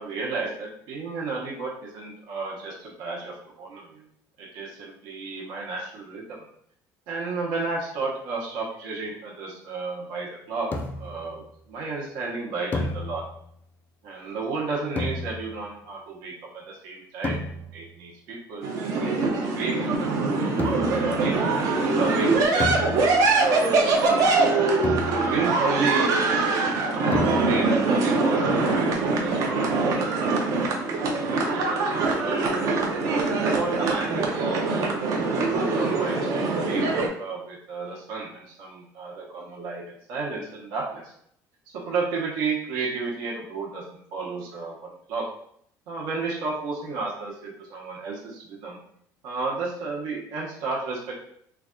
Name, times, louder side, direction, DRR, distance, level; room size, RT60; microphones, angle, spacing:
voice 1, 0.0-4.0 4.4-6.5 7.1-10.7 11.0-13.2 14.0-19.1 19.4-20.4 20.9-23.2 23.9-24.7 25.0-26.2 26.9-32.6 33.3-35.2 35.5-41.1 41.7-45.3 45.9-48.8 49.2-51.2, right 3 dB, 70° right, -3 dB, 0.9 m, -33 dB
sound 1, 10.7-11.3 12.7-13.6 15.0-15.7 17.2-18.0 20.6-21.1 22.6-23.5 24.8-25.6 27.1-27.8, left 2 dB, 25° left, 0.3 m, -32 dB
sound 2, 18.6-37.1, right 3 dB, 50° right, 0.6 m, -23 dB
3.2 x 2.4 x 3.7 m, 0.68 s
cardioid pair, 160°, 7 cm